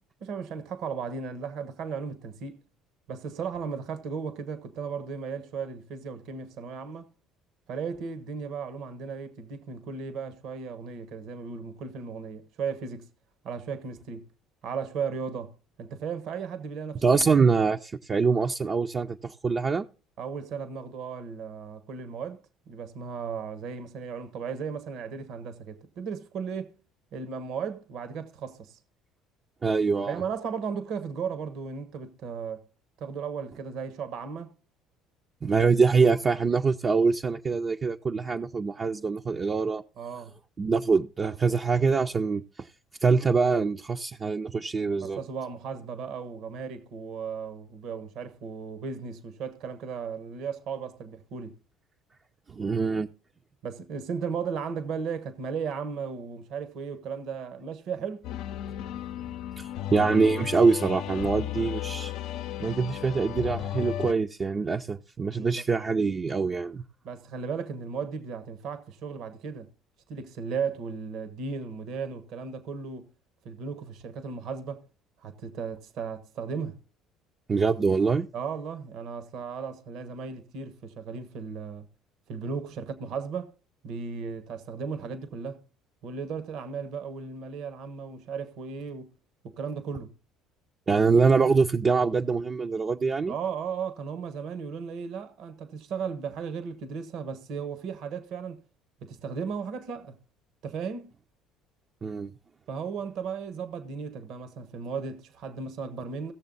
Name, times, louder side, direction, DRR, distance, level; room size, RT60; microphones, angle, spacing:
voice 1, 0.2-2.6 3.1-7.1 7.7-13.1 13.4-14.2 14.6-17.2 20.2-26.7 27.1-28.8 30.1-32.6 33.0-34.5 40.0-40.3 45.0-51.5 53.6-58.3 65.3-65.6 67.0-69.7 70.1-73.1 73.4-74.8 75.2-76.8 78.3-81.9 82.3-83.5 83.8-85.6 86.0-89.1 89.4-90.1 93.3-98.6 99.0-100.2 100.6-101.1 102.7-106.3, right 6 dB, 65° right, 1.2 m, -35 dB
voice 2, 17.0-19.9 29.6-30.2 35.4-39.8 40.6-42.7 43.0-45.2 52.5-53.1 59.6-62.1 62.6-66.8 77.5-78.3 90.9-93.3 102.0-102.3, right 4 dB, 35° right, 0.6 m, -24 dB
sound 1, 58.2-64.1, left 12 dB, 70° left, 0.5 m, -34 dB
16.5 x 6.8 x 4.0 m
supercardioid pair, 80°, 0 cm